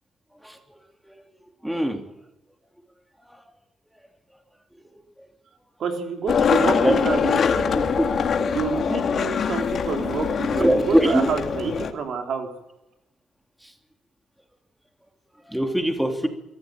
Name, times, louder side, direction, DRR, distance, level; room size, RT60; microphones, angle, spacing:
voice 1, 1.6-2.0 3.3-3.4 6.7-6.9 10.6-11.3 13.6-13.7 15.5-16.3, equal, 5° right, 5 dB, 2.8 m, -22 dB
voice 2, 5.8-7.9 8.5-12.5, right 6 dB, 65° right, 4 dB, 3.6 m, -28 dB
Skateboard, 6.3-11.9, left 6 dB, 55° left, 2.2 m, -23 dB
22.5 x 14.5 x 9.0 m, 0.94 s
cardioid pair, 90°, 0 cm